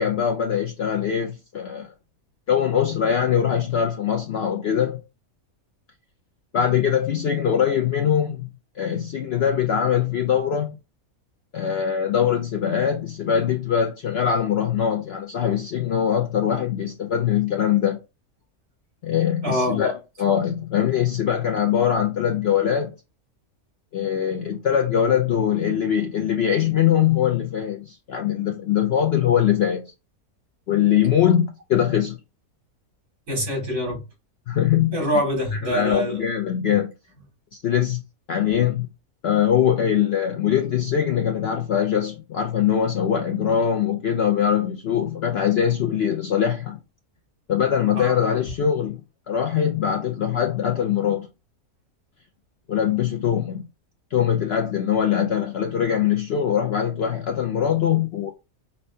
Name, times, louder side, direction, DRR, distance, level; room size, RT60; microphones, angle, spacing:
voice 1, 0.0-1.9 2.5-5.0 6.5-8.5 8.8-10.7 11.5-18.0 19.0-19.9 20.2-22.9 23.9-29.9 30.7-32.2 34.5-35.0 35.5-36.9 37.5-38.0 38.3-38.9 39.2-46.8 47.5-49.0 49.3-51.3 52.7-53.6 54.1-58.3, left 9 dB, 65° left, 0.6 m, -22 dB
voice 2, 19.4-19.8 33.3-34.0 34.9-36.2 48.0-48.1, equal, 70° right, 2.7 m, -24 dB
5.4 x 2.1 x 2.6 m
omnidirectional pair, 1.5 m